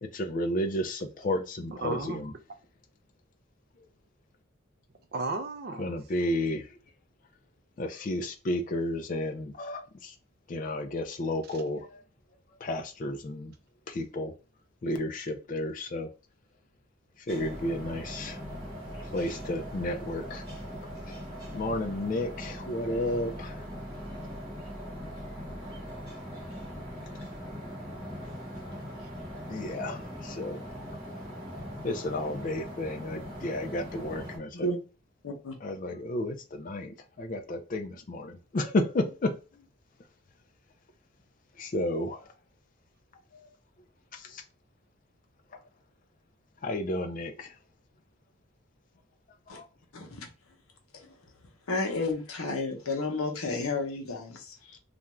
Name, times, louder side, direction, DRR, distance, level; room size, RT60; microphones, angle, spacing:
voice 1, 0.0-2.3 5.8-6.8 7.8-10.1 10.5-12.0 12.6-13.5 13.9-14.3 14.8-16.1 17.2-18.4 19.0-20.4 21.1-21.2 21.5-23.7 29.5-30.6 31.8-34.7 35.6-39.7 41.6-42.3 43.3-43.5 44.1-44.4 45.5-45.6 46.6-47.6 49.5-49.7, left 1 dB, 40° left, 0.3 m, -32 dB
voice 2, 1.8-2.2 5.1-6.0 28.8-29.9, right 3 dB, 45° right, 0.4 m, -36 dB
sound 1, 17.3-34.4, equal, 15° right, 0.9 m, -40 dB
voice 3, 35.2-35.5 49.5-49.6 49.9-50.3 50.9-51.1 51.7-54.8, left 2 dB, 85° left, 0.7 m, -32 dB
2.4 x 2.2 x 3.0 m
head